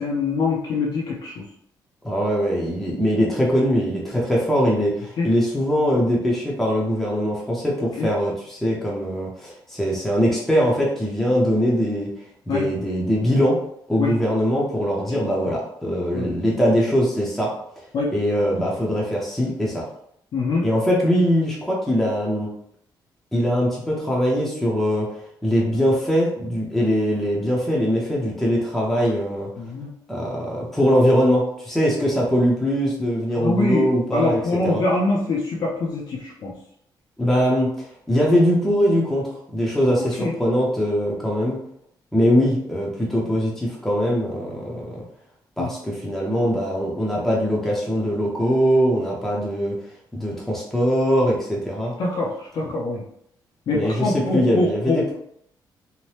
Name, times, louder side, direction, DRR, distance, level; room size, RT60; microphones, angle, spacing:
voice 1, 0.0-1.4 5.2-5.3 8.0-8.1 12.5-12.7 14.0-14.1 15.5-15.6 16.1-16.3 17.9-18.1 20.3-20.7 29.6-29.9 33.4-36.5 40.2-40.3 45.6-45.7 52.0-53.0 53.7-55.0, left 3 dB, 55° left, -4 dB, 0.6 m, -24 dB
voice 2, 2.0-12.1 12.5-13.6 13.9-17.5 18.1-19.8 20.6-22.5 23.3-25.1 25.4-29.5 30.1-34.8 37.2-41.6 42.1-45.0 45.6-49.7 50.1-51.9 53.7-55.1, equal, 5° left, -4 dB, 0.6 m, -22 dB
2.8 x 2.1 x 3.2 m, 0.70 s
cardioid pair, 140°, 8 cm